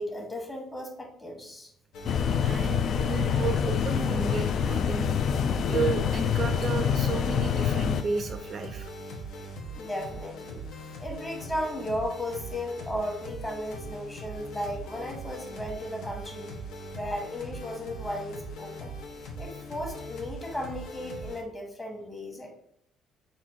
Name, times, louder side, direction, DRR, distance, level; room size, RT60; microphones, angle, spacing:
voice 1, 0.0-1.7 9.8-10.6 11.0-16.5 16.9-19.0 19.4-22.5, equal, 15° left, 0 dB, 1.2 m, -35 dB
sound 1, 1.9-21.4, equal, 75° left, 0.8 m, -41 dB
sound 2, 2.1-8.0, left 7 dB, 55° left, 0.3 m, -26 dB
voice 2, 2.4-5.1 5.7-8.9, right 5 dB, 40° right, 7 dB, 0.4 m, -32 dB
4.2 x 2.5 x 4.3 m, 0.72 s
cardioid pair, 115°, 0 cm